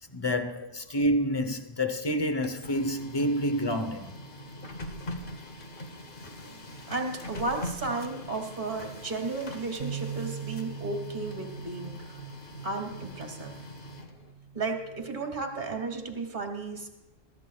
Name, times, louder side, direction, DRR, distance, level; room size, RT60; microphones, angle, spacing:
voice 1, 0.1-4.2, equal, 25° left, 0.7 m, -28 dB
Printer, 2.3-14.3, left 1 dB, 45° left, 1.1 m, -43 dB
voice 2, 6.9-12.2 12.6-13.5 14.5-16.9, right 3 dB, 40° right, 1.9 m, -34 dB
Bass guitar, 9.8-16.0, right 7 dB, 80° right, 0.3 m, -42 dB
22.5 x 13.0 x 2.3 m
omnidirectional pair, 1.3 m